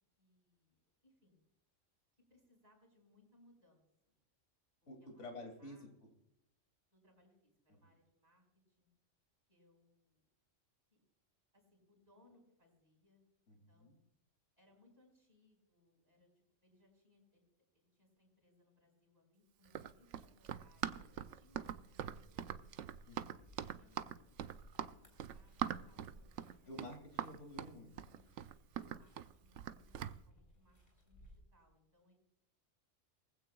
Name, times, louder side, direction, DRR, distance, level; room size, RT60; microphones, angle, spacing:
voice 1, 0.2-1.4 2.3-4.2 5.0-5.9 6.9-8.9 9.5-10.3 10.9-11.0 11.5-14.0 14.6-16.3 16.6-17.4 17.7-22.9 23.6-26.8 28.7-32.1, left 1 dB, 30° right, 0 dB, 5.4 m, -71 dB
voice 2, 4.9-5.9 7.7-7.8 13.5-14.0 23.1-23.5 26.7-28.2, left 1 dB, 65° left, 3 dB, 3.1 m, -51 dB
Run, 19.7-30.2, right 10 dB, 70° right, 1.0 m, -43 dB
sound 1, 21.0-31.4, equal, 40° left, 3.7 m, -66 dB
19.5 x 15.5 x 2.3 m, 0.83 s
omnidirectional pair, 1.3 m